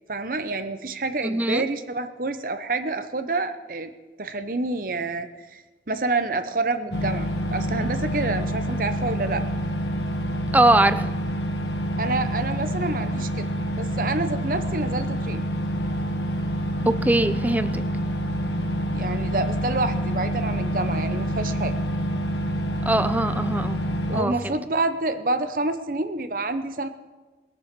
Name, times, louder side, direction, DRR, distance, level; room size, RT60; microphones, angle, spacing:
voice 1, 0.1-3.9 4.2-5.6 5.9-9.5 12.0-13.5 13.7-15.4 18.9-21.7 24.1-26.9, right 2 dB, 50° right, 9 dB, 0.9 m, -28 dB
voice 2, 1.2-1.6 10.5-11.1 16.8-17.8 22.9-23.8 24.1-24.6, right 1 dB, 10° right, 12 dB, 0.5 m, -21 dB
sound 1, 6.9-24.2, equal, 80° left, 1.5 m, -27 dB
21.0 x 7.1 x 7.6 m, 1.3 s
head